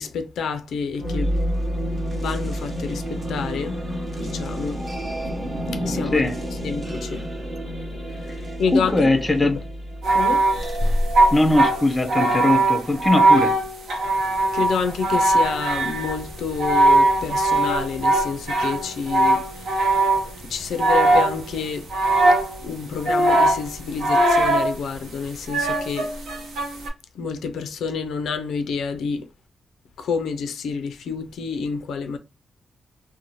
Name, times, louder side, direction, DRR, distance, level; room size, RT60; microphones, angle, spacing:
voice 1, 0.0-1.3 2.1-3.8 4.2-4.8 5.7-6.2 6.6-7.3 8.1-9.0 10.1-10.5 14.5-19.8 20.5-21.9 22.6-26.1 27.1-29.3 30.0-32.2, left 5 dB, 80° left, 0.4 m, -28 dB
sound 1, 0.9-12.8, equal, 30° right, 0.8 m, -30 dB
voice 2, 8.7-9.7 11.3-13.6, left 2 dB, 15° left, 0.4 m, -20 dB
sound 2, 10.0-20.4 20.8-21.6 21.9-22.7 23.0-24.7 25.5-26.9, right 2 dB, 80° right, 0.8 m, -20 dB
2.6 x 2.0 x 2.9 m
cardioid pair, 130°, 0 cm